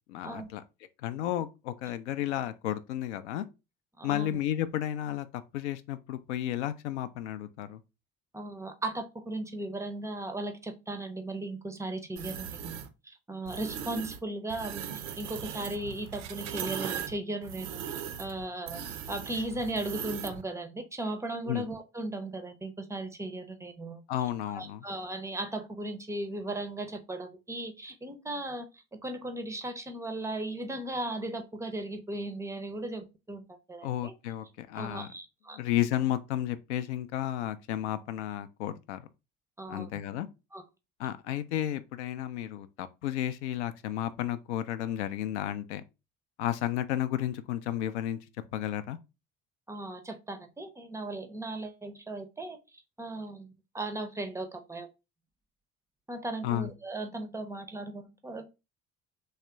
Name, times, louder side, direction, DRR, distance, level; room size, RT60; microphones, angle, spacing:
voice 1, 0.1-0.6 1.0-3.4 4.0-7.8 21.5-21.7 24.1-24.8 33.8-35.1 35.5-39.1 39.7-40.3 41.0-45.8 46.4-48.2 48.5-49.0 56.4-56.7, left 12 dB, 65° left, 0.5 m, -32 dB
voice 2, 4.0-4.4 8.3-12.7 13.0-17.9 18.2-18.8 19.1-24.0 24.5-34.1 34.7-35.6 39.6-39.9 40.5-40.6 49.7-52.6 53.0-54.9 56.1-58.5, right 2 dB, 10° right, 0.5 m, -37 dB
sound 1, 12.2-12.9 13.5-14.2 14.5-20.4, right 8 dB, 65° right, 0.5 m, -39 dB
3.2 x 2.8 x 3.3 m
figure-of-eight pair, 55°, 38 cm